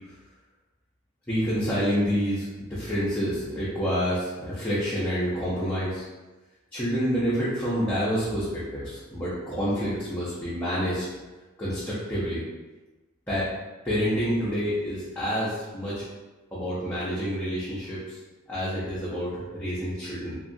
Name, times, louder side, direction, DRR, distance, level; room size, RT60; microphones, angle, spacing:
voice 1, 1.3-6.1 6.7-11.1 11.6-12.4 13.3-13.5 13.8-16.0 16.5-18.2 18.5-20.4, equal, 10° left, -10 dB, 0.6 m, -28 dB
2.9 x 2.3 x 2.6 m, 1.2 s
head